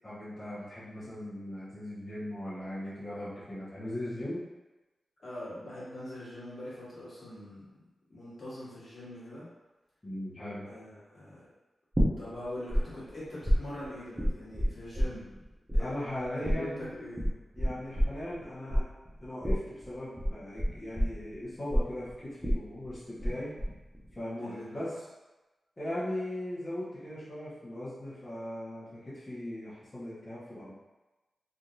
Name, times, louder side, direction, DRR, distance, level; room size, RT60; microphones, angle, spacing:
voice 1, 0.0-4.4 10.0-10.6 15.8-16.9 17.6-18.9 19.2-23.5 24.1-24.9 25.8-30.8, left 1 dB, 20° left, -13 dB, 1.1 m, -38 dB
voice 2, 5.2-7.6 8.1-9.5 10.6-11.4 12.2-15.3 15.7-15.9 16.4-17.4 24.4-24.9, left 1 dB, 45° left, -9 dB, 1.4 m, -42 dB
sound 1, 11.9-12.8 13.1-15.4 15.7-23.3 23.6-24.1, equal, 15° right, 0.8 m, -28 dB
3.5 x 2.8 x 2.5 m, 1.1 s
wide cardioid pair, 130°, 0 cm